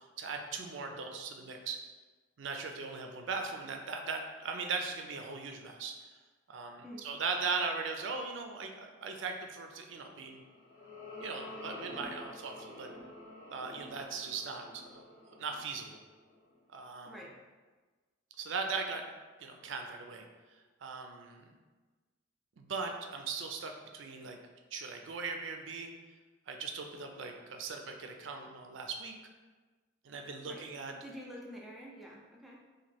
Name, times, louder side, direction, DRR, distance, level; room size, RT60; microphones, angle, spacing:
voice 1, 0.2-1.8 2.4-6.2 6.5-10.4 11.2-12.9 13.5-15.0 15.3-16.0 16.7-17.2 18.4-19.0 19.4-20.3 20.8-21.5 22.6-24.4 24.7-25.9 26.5-29.1 30.0-30.9, right 4 dB, 75° right, 4 dB, 0.5 m, -39 dB
sound 1, 10.2-16.7, left 1 dB, 60° left, 1.0 m, -49 dB
voice 2, 31.0-32.6, equal, ahead, -4 dB, 0.5 m, -47 dB
3.0 x 2.6 x 4.2 m, 1.3 s
head